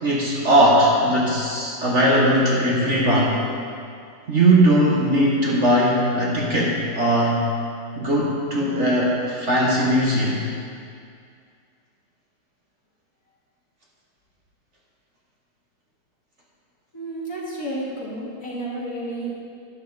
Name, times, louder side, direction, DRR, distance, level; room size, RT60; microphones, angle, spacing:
voice 1, 0.0-3.4 4.3-7.4 8.0-10.4, right 1 dB, 45° right, -4 dB, 1.5 m, -19 dB
voice 2, 16.9-19.4, right 1 dB, 50° left, -6 dB, 2.7 m, -31 dB
11.5 x 9.5 x 4.0 m, 2.3 s
omnidirectional pair, 2.0 m